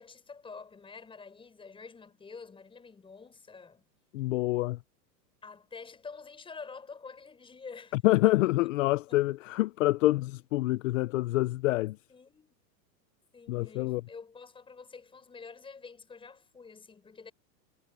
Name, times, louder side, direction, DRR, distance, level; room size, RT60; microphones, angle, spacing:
voice 1, 0.0-3.8 5.4-8.0 9.1-9.2 12.1-12.6 13.3-17.3, left 5 dB, 10° left, 5.2 m, -48 dB
voice 2, 4.1-4.8 7.9-12.0 13.5-14.0, left 18 dB, 50° left, 0.7 m, -26 dB
supercardioid pair, 155°, 49 cm